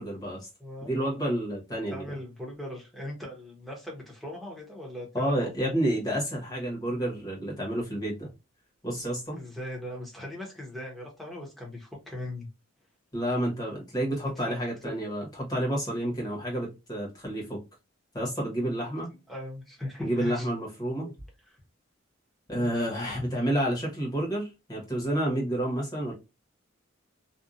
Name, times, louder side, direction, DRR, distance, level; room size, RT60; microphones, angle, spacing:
voice 1, 0.0-0.5 0.8-2.2 5.1-8.3 8.8-9.4 13.1-17.6 18.1-19.1 20.0-21.1 22.5-26.1, right 1 dB, 20° left, 1.1 m, -30 dB
voice 2, 0.6-0.9 1.9-5.8 9.3-12.5 14.2-14.5 14.8-14.9 19.3-20.5 21.0-21.1 21.5-21.6 22.5-22.7, left 1 dB, ahead, 0.9 m, -39 dB
2.7 x 2.3 x 2.4 m
head